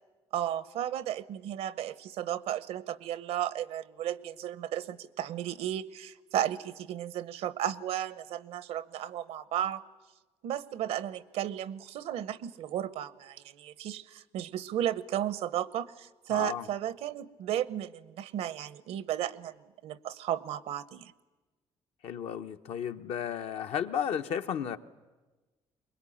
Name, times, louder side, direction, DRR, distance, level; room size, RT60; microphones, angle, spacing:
voice 1, 0.3-9.8 10.4-19.5 19.8-21.1, right 11 dB, 85° right, 16 dB, 0.9 m, -34 dB
voice 2, 16.3-16.7 22.0-24.8, left 8 dB, 75° left, 7 dB, 1.0 m, -33 dB
24.0 x 21.0 x 9.9 m, 1.2 s
cardioid pair, 115°, 10 cm